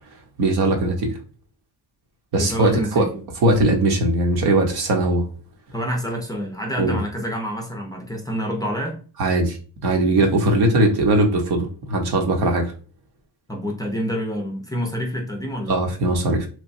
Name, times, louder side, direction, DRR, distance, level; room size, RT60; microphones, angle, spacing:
voice 1, 0.4-1.2 2.3-5.2 6.8-7.0 9.2-9.6 9.8-12.7 15.7-16.5, right 1 dB, 60° right, 0.9 m, -20 dB
voice 2, 2.4-3.1 5.7-9.0 13.5-15.8, equal, 10° left, 0.5 m, -27 dB
3.0 x 2.2 x 2.6 m
cardioid pair, 95°, 42 cm